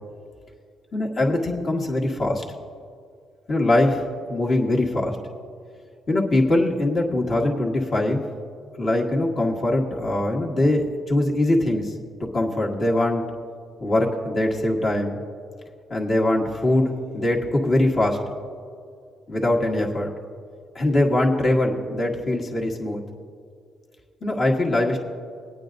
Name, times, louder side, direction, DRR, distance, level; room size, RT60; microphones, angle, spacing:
voice 1, 0.9-2.4 3.5-5.2 6.1-8.2 8.8-11.9 12.2-13.2 13.8-15.2 15.9-18.2 19.3-20.1 20.8-23.0 24.2-25.0, left 1 dB, 45° left, -2 dB, 1.8 m, -22 dB
22.0 x 9.0 x 2.6 m, 2.2 s
cardioid pair, 90°, 0 cm